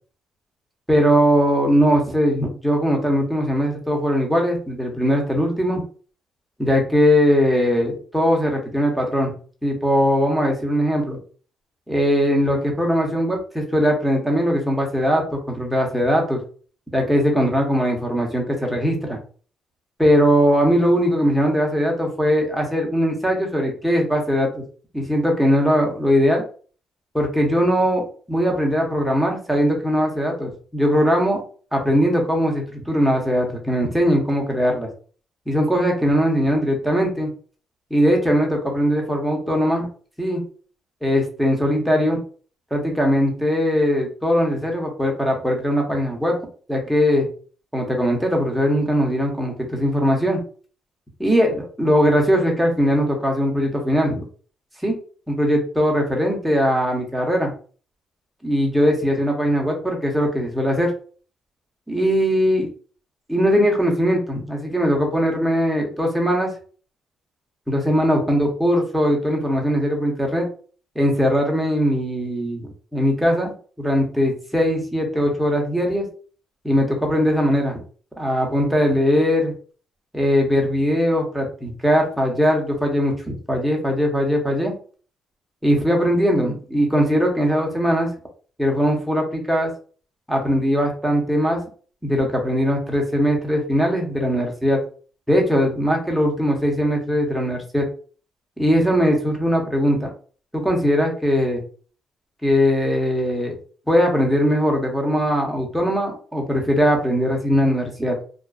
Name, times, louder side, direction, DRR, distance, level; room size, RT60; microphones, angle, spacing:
voice 1, 0.9-5.8 6.6-9.3 9.6-11.2 11.9-16.4 16.9-19.2 20.0-24.6 24.9-26.4 27.1-31.4 31.7-34.9 35.5-37.3 37.9-39.9 40.2-40.4 41.0-42.2 42.7-46.4 46.7-47.3 47.7-50.4 51.2-54.2 54.8-54.9 55.3-57.5 58.4-60.9 61.9-62.7 63.3-66.5 67.7-70.5 70.9-73.5 73.8-76.0 76.6-77.8 78.2-79.5 80.1-84.7 85.6-88.1 88.6-89.7 90.3-91.6 92.0-94.8 95.3-97.9 98.6-100.1 100.5-101.6 102.4-103.6 103.9-108.2, equal, ahead, 0 dB, 0.8 m, -20 dB
2.4 x 2.2 x 2.3 m, 0.41 s
cardioid pair, 90°, 0 cm